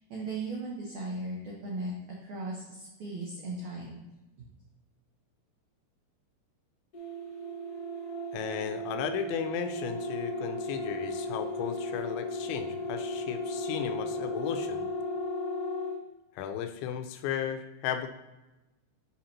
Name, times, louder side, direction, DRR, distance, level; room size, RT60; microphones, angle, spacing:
voice 1, 0.0-1.9 2.2-4.0 4.4-4.5, right 2 dB, 90° right, -3 dB, 1.6 m, -37 dB
sound 1, 6.9-16.0, left 1 dB, 60° left, 1.6 m, -35 dB
voice 2, 8.3-14.8 16.4-18.1, left 9 dB, 90° left, 7 dB, 3.0 m, -35 dB
8.7 x 5.8 x 2.8 m, 1.0 s
omnidirectional pair, 5.1 m